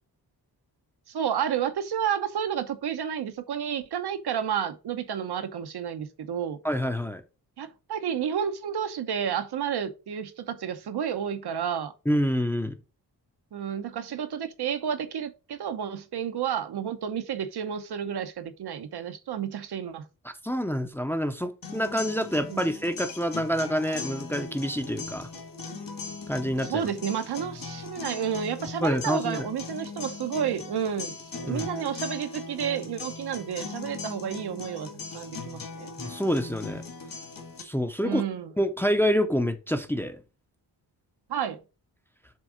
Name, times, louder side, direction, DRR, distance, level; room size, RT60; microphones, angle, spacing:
voice 1, 1.1-6.6 7.6-11.9 13.5-20.1 22.5-22.7 26.7-35.9 38.0-38.5 41.3-41.6, right 8 dB, 75° right, 0.9 m, -31 dB
voice 2, 6.6-7.2 12.1-12.7 20.4-25.3 26.3-26.9 28.8-29.5 31.5-31.7 36.0-36.8 37.6-38.2 38.6-40.2, equal, 5° left, 0.6 m, -27 dB
sound 1, 21.6-37.6, left 4 dB, 55° left, 1.6 m, -39 dB
7.5 x 3.6 x 5.0 m
wide cardioid pair, 165°, 40 cm